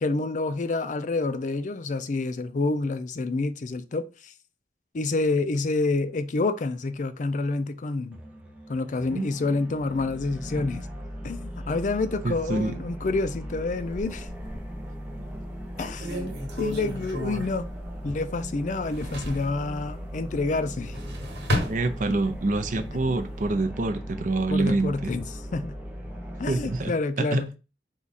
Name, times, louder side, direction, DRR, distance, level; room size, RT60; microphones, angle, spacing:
voice 1, 0.0-4.3 4.9-8.2 8.7-10.9 11.2-14.3 15.8-16.3 16.6-17.7 18.0-21.0 24.5-25.2 25.5-25.8 26.4-27.5, left 3 dB, 45° left, 0.4 m, -28 dB
sound 1, 8.1-26.9, equal, 5° right, 0.7 m, -38 dB
voice 2, 12.2-12.7 15.2-15.3 21.7-25.1 26.5-27.4, right 2 dB, 45° right, 0.6 m, -26 dB
sound 2, 13.8-14.8 15.3-15.4 15.8-18.4 18.7-19.5 20.7-22.4 22.9-23.5, left 1 dB, 85° right, 1.2 m, -33 dB
4.6 x 2.4 x 4.1 m
head